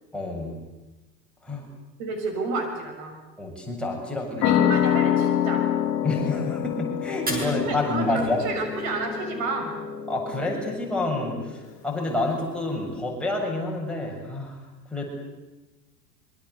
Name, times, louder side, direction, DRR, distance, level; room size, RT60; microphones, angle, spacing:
voice 1, 0.1-0.5 1.4-1.6 3.4-4.5 6.0-8.4 10.1-14.6 14.9-15.0, left 2 dB, ahead, -2 dB, 7.0 m, -28 dB
voice 2, 2.0-3.2 4.4-5.6 7.4-9.7, right 3 dB, 45° right, 4 dB, 6.1 m, -30 dB
sound 1, 4.4-11.6, left 10 dB, 35° left, 3.2 m, -27 dB
Fire, 7.1-9.1, equal, 15° right, 7.9 m, -37 dB
26.0 x 24.0 x 8.2 m, 1.1 s
figure-of-eight pair, 90°, 49 cm